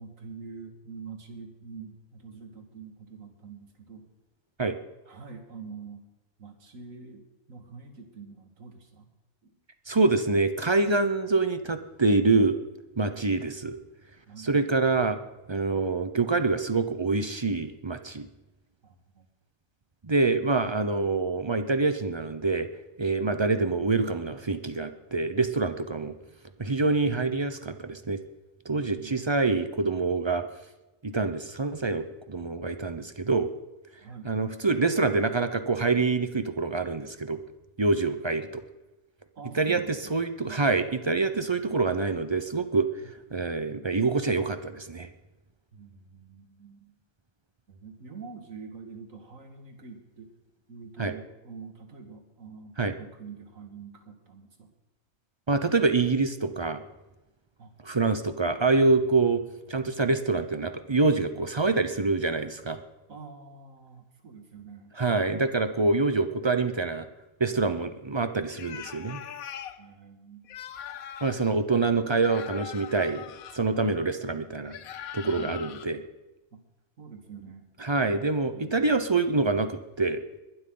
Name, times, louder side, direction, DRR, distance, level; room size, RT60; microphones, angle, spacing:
voice 1, 0.0-4.1 5.1-6.1 6.4-9.1 9.4-9.5 13.0-13.2 14.3-14.5 18.8-19.3 28.9-29.3 34.0-34.3 39.4-40.1 40.4-40.6 43.0-43.1 45.7-47.0 47.7-50.3 50.7-54.7 57.6-57.7 63.1-64.9 69.8-70.6 73.7-74.0 75.3-75.5 76.5-76.6 77.0-77.7 78.5-78.9, right 5 dB, 65° right, 5 dB, 2.3 m, -45 dB
voice 2, 9.9-12.6 13.0-13.8 14.4-15.2 15.5-18.3 20.0-22.7 23.0-26.1 26.6-28.2 28.6-30.5 31.0-33.5 34.2-37.4 37.8-38.6 39.5-42.9 43.3-45.1 51.0-51.1 52.8-52.9 55.5-56.8 57.8-59.4 59.7-62.8 65.0-67.1 67.4-69.2 71.2-73.2 73.5-74.7 75.1-76.0 77.8-80.2, right 3 dB, 30° right, 10 dB, 0.5 m, -26 dB
sound 1, 68.5-69.8 70.4-71.5 72.2-73.6 74.7-75.9, left 9 dB, 80° left, 1.2 m, -41 dB
21.5 x 12.0 x 3.9 m, 1.0 s
omnidirectional pair, 1.5 m